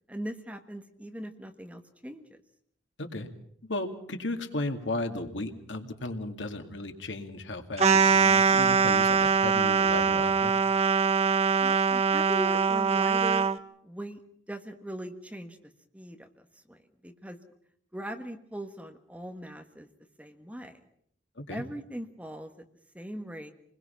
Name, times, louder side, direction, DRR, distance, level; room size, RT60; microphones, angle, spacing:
voice 1, 0.1-2.4 11.6-13.5 13.8-14.2 14.5-16.3 16.7-17.4 17.9-19.9 20.2-20.8 21.5-22.5 22.9-23.5, equal, 5° right, 6 dB, 1.5 m, -39 dB
voice 2, 3.6-10.5 21.4-21.6, left 2 dB, 90° left, 5 dB, 2.3 m, -35 dB
sound 1, 7.8-13.6, right 5 dB, 35° right, 1.0 m, -23 dB
28.0 x 21.0 x 5.8 m, 0.66 s
head